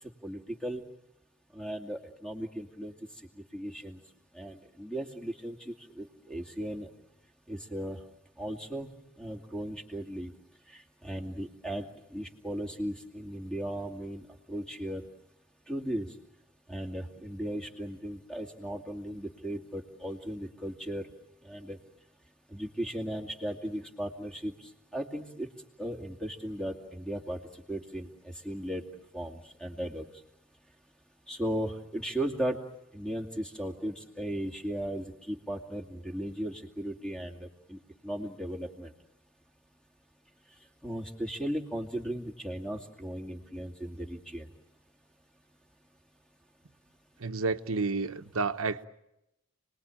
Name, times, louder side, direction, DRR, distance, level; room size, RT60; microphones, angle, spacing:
voice 1, 0.2-0.8 1.5-2.9 3.5-4.0 4.3-6.9 7.5-8.0 8.4-10.3 10.7-11.9 12.1-15.0 15.7-16.1 16.7-21.1 21.4-21.8 22.5-25.5 25.8-28.8 29.1-30.1 31.3-32.6 32.9-38.9 40.8-44.5, right 1 dB, 5° left, 2.3 m, -36 dB
voice 2, 47.2-48.8, right 4 dB, 90° right, 1.1 m, -30 dB
30.0 x 20.5 x 8.9 m
head